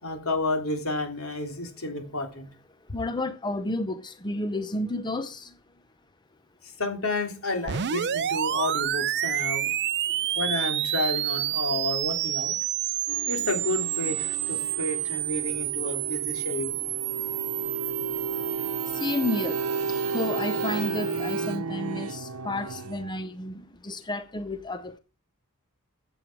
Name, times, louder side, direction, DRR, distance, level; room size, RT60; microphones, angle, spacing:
voice 1, 0.0-2.5 6.8-9.7 10.3-12.5 13.3-16.7, left 2 dB, 70° left, 3.4 m, -31 dB
voice 2, 2.9-5.5 18.9-19.6 20.1-25.0, left 2 dB, 20° left, 0.7 m, -31 dB
sound 1, 7.7-21.5, right 13 dB, 50° right, 0.5 m, -30 dB
sound 2, 13.1-23.1, right 4 dB, 75° right, 1.0 m, -33 dB
15.0 x 8.0 x 4.7 m
head